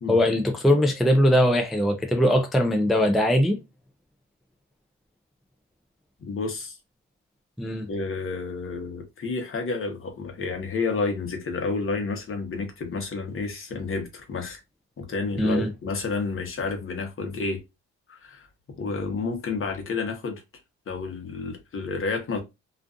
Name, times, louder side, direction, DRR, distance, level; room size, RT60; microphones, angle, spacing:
voice 1, 0.1-3.6 7.6-7.9 15.4-15.7, equal, ahead, 0.4 m, -21 dB
voice 2, 6.2-6.8 7.9-14.6 15.0-17.6 18.1-18.5 18.8-20.4 20.9-22.4, left 4 dB, 45° left, 0.9 m, -30 dB
2.4 x 2.4 x 2.4 m
cardioid pair, 90°, 30 cm